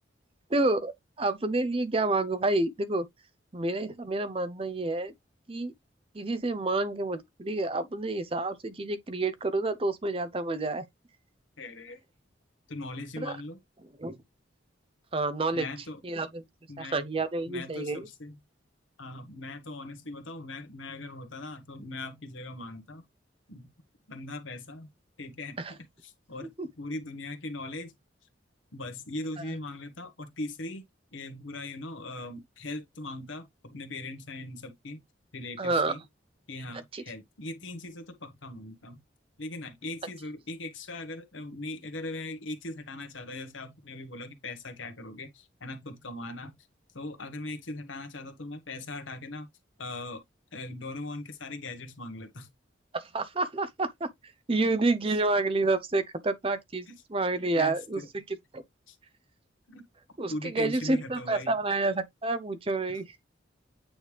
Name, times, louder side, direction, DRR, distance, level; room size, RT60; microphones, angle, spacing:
voice 1, 0.5-3.1 3.5-5.1 5.5-5.7 6.1-10.8 13.2-13.3 14.0-14.2 15.1-15.7 16.0-16.4 16.8-18.1 25.6-25.7 26.6-26.7 35.6-35.9 36.9-37.0 52.9-54.1 54.5-58.2 58.5-58.6 60.2-63.0, right 2 dB, 30° right, 0.6 m, -29 dB
voice 2, 11.6-12.0 12.7-13.6 15.5-16.2 16.7-17.0 17.5-18.4 19.0-23.0 23.5-23.7 24.1-24.9 25.2-25.6 26.0-27.9 28.7-30.8 31.1-35.0 35.3-36.0 36.5-39.0 39.4-46.5 46.9-49.5 49.8-50.2 50.5-52.5 54.5-54.7 55.1-55.2 56.9-57.0 57.5-58.1 58.9-59.0 59.7-59.8 60.3-61.6 62.9-63.0, left 2 dB, 90° left, 1.3 m, -40 dB
8.8 x 3.2 x 3.3 m
head